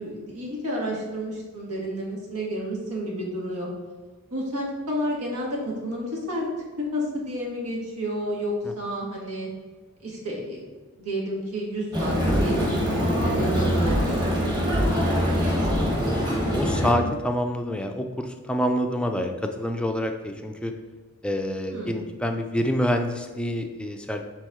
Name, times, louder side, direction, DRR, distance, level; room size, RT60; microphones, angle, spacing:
voice 1, 0.0-3.7 4.3-6.5 6.8-9.5 10.0-10.6 11.0-14.4 14.7-15.9 21.7-22.0, equal, 90° right, -3 dB, 1.7 m, -31 dB
sound 1, 11.9-16.9, equal, 20° right, 1.2 m, -24 dB
sound 2, 12.3-12.6 13.9-14.2 14.7-15.0 15.6-16.0, equal, 60° right, 0.9 m, -27 dB
voice 2, 16.5-19.3 19.6-20.7 21.2-24.2, equal, 5° left, 4 dB, 0.4 m, -27 dB
8.3 x 3.5 x 3.6 m, 1.3 s
head